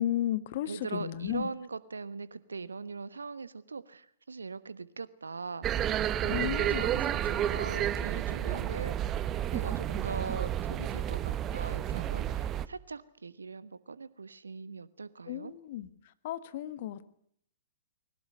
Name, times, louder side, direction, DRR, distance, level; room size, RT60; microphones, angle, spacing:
voice 1, 0.0-1.5 6.3-6.8 15.3-15.9 16.2-17.1, left 12 dB, 50° left, 14 dB, 1.6 m, -33 dB
voice 2, 0.6-15.5, right 4 dB, 80° right, 16 dB, 1.2 m, -41 dB
sound 1, 5.6-12.7, right 11 dB, 25° right, 1.0 m, -31 dB
21.0 x 18.0 x 9.6 m, 0.67 s
figure-of-eight pair, 115°, 0 cm